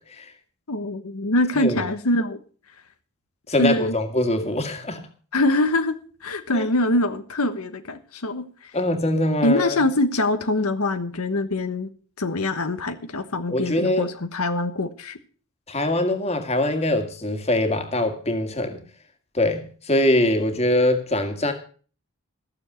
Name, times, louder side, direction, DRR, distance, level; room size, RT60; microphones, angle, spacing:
voice 1, 0.7-2.4 3.6-4.0 5.3-5.9 6.2-8.7 9.4-11.9 12.2-15.2, left 1 dB, 80° left, 1.2 m, -24 dB
voice 2, 1.5-1.8 3.5-5.1 6.5-6.7 8.7-9.8 13.5-14.1 15.7-18.8 19.3-21.5, left 1 dB, 30° left, 2.0 m, -23 dB
15.0 x 7.2 x 7.8 m
head